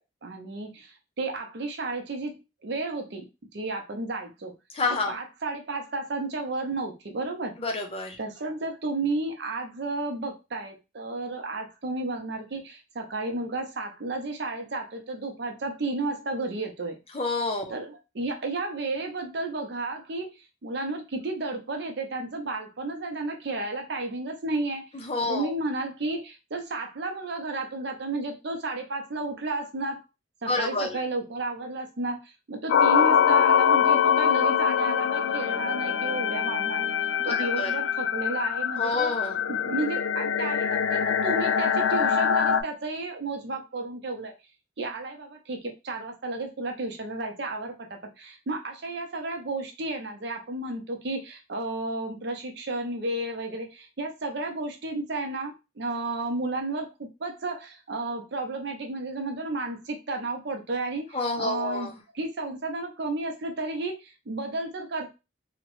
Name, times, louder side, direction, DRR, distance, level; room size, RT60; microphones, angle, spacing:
voice 1, 0.2-2.3 2.6-3.3 3.5-4.5 4.9-7.6 8.2-17.0 17.7-24.8 25.3-30.0 30.4-36.9 37.2-39.1 39.5-44.3 44.8-65.1, right 2 dB, 60° right, 3 dB, 0.6 m, -32 dB
voice 2, 4.7-5.1 7.6-8.2 17.1-17.6 24.9-25.5 30.5-31.0 37.3-37.7 38.8-39.4 61.1-61.9, left 3 dB, 30° left, 1 dB, 0.6 m, -28 dB
sound 1, 32.7-42.6, left 7 dB, 80° left, 0.3 m, -24 dB
2.8 x 2.1 x 3.0 m, 0.26 s
head